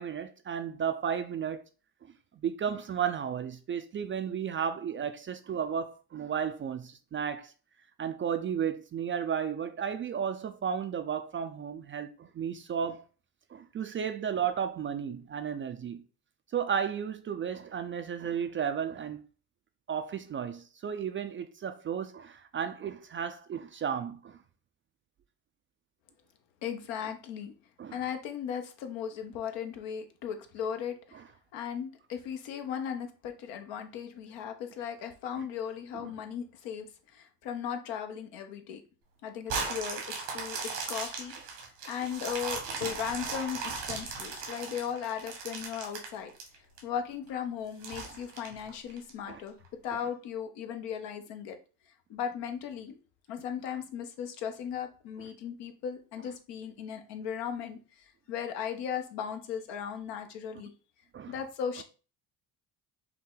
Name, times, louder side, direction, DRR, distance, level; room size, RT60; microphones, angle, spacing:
voice 1, 0.0-1.6 2.4-7.5 8.0-13.0 13.5-16.0 16.5-19.2 19.9-24.4 27.8-28.0 31.1-31.2 35.4-35.5 35.9-36.1 49.3-49.4 61.1-61.3, right 8 dB, 30° right, 0.4 m, -33 dB
voice 2, 26.6-27.5 27.9-31.2 31.5-36.9 37.1-38.8 39.2-40.0 40.3-40.6 40.9-41.3 41.9-46.3 46.8-49.6 49.8-51.6 52.1-53.0 53.3-57.8 58.3-60.7 61.3-61.8, left 8 dB, 70° left, 0.9 m, -37 dB
sound 1, 39.5-46.8 47.3-47.4 47.8-49.1 49.6-49.7, right 4 dB, 85° right, 1.5 m, -37 dB
5.6 x 2.1 x 3.8 m
hypercardioid pair, 65°, 45 cm